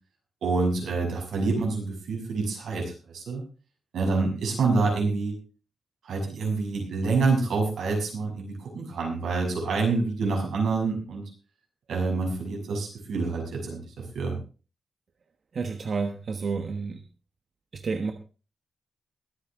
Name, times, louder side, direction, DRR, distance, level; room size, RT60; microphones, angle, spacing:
voice 1, 0.4-3.4 3.9-5.4 6.0-11.2 11.9-14.4, right 4 dB, 85° right, 1 dB, 6.3 m, -27 dB
voice 2, 15.5-17.0 17.7-18.1, right 4 dB, 50° right, 6 dB, 1.3 m, -30 dB
22.0 x 8.6 x 3.7 m, 0.35 s
wide cardioid pair, 135°, 0 cm